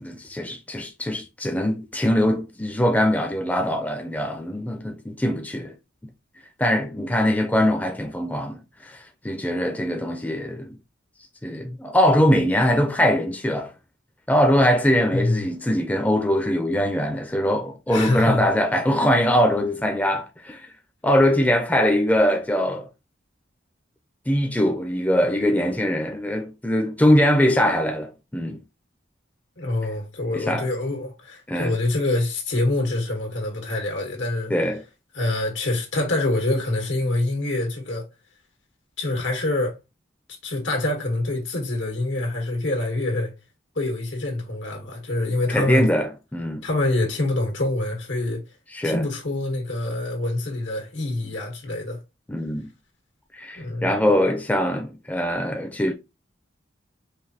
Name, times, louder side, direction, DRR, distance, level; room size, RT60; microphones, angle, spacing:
voice 1, 0.0-5.7 6.6-10.8 11.4-13.7 14.3-20.7 21.0-22.9 24.3-28.6 30.3-30.7 31.5-31.8 34.5-34.8 45.5-46.6 48.7-49.1 51.2-51.3 52.3-52.7 53.4-55.9, equal, 10° left, 0.4 m, -22 dB
voice 2, 15.1-15.4 17.9-18.4 29.6-34.5 35.1-38.1 39.0-39.7 40.4-43.3 43.7-45.9 46.6-48.4 48.8-52.0 53.5-53.9, left 2 dB, 90° left, 1.6 m, -25 dB
5.0 x 2.6 x 2.7 m
head